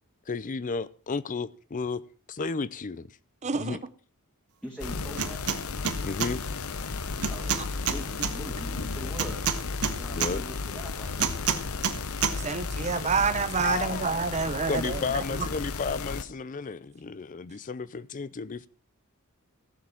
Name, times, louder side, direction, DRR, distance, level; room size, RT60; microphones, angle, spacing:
voice 1, 0.3-2.0 2.3-3.1 3.5-3.8 6.0-6.4 10.1-10.4 13.6-14.1 14.7-18.7, left 4 dB, 35° left, 0.5 m, -33 dB
voice 2, 3.4-3.8 12.4-15.0 15.4-15.5, right 5 dB, 30° right, 0.7 m, -28 dB
voice 3, 4.6-5.4 7.3-7.5 7.9-9.6 9.9-11.3, right 1 dB, 5° left, 2.0 m, -42 dB
sound 1, 4.8-16.2, left 4 dB, 70° left, 0.9 m, -34 dB
sound 2, 5.2-5.6 5.8-6.3 7.2-8.3 9.2-10.3 11.2-12.0 12.2-12.3, right 7 dB, 85° right, 1.2 m, -27 dB
15.0 x 7.5 x 5.8 m
head